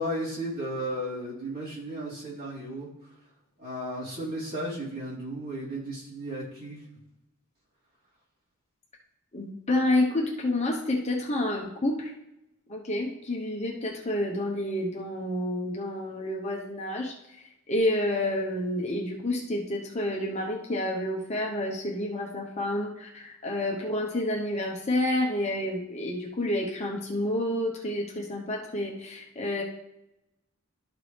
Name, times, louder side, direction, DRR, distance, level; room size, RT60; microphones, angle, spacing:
voice 1, 0.0-2.9 3.6-6.8, equal, 45° right, -7 dB, 3.1 m, -34 dB
voice 2, 9.3-12.1 12.7-17.1 17.7-29.6, left 1 dB, 30° left, -1 dB, 0.9 m, -29 dB
12.0 x 4.7 x 3.3 m, 0.87 s
head